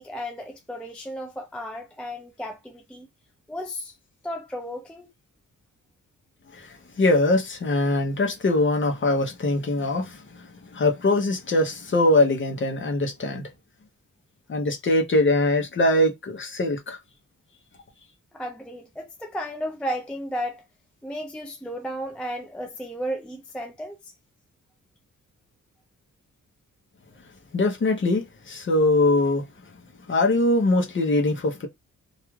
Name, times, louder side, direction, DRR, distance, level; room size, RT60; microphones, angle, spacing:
voice 1, 0.0-3.1 3.5-3.9 4.2-5.1 18.3-20.6 21.0-24.0, equal, 5° left, 0.3 m, -34 dB
voice 2, 6.5-13.4 14.5-17.0 27.5-29.5 30.1-31.7, left 2 dB, 40° left, 0.7 m, -22 dB
2.4 x 2.3 x 3.0 m
wide cardioid pair, 170°, 32 cm